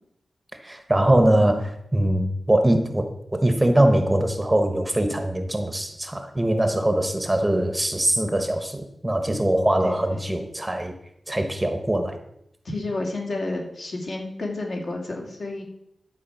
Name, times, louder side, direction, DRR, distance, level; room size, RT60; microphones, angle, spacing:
voice 1, 0.6-10.9 11.3-12.2, right 1 dB, 15° right, 6 dB, 1.0 m, -22 dB
voice 2, 9.8-10.2 12.6-15.6, left 2 dB, 60° left, -1 dB, 2.7 m, -30 dB
11.5 x 4.8 x 7.0 m, 0.78 s
wide cardioid pair, 140°, 0 cm